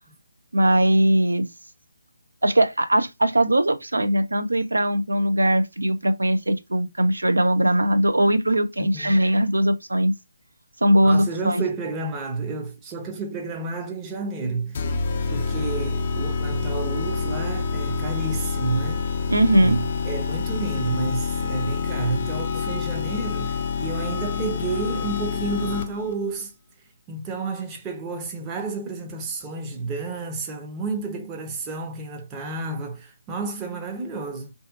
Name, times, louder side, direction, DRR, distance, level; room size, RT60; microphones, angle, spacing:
voice 1, 0.5-1.5 2.4-10.1 10.8-11.6 19.3-19.8, right 1 dB, 80° right, 0.6 m, -20 dB
voice 2, 8.8-9.2 11.0-19.1 19.6-26.5 27.1-34.5, right 3 dB, 15° right, 0.6 m, -30 dB
sound 1, 14.7-26.1, left 5 dB, 35° left, 0.4 m, -27 dB
2.6 x 2.4 x 2.3 m
figure-of-eight pair, 150°, 0 cm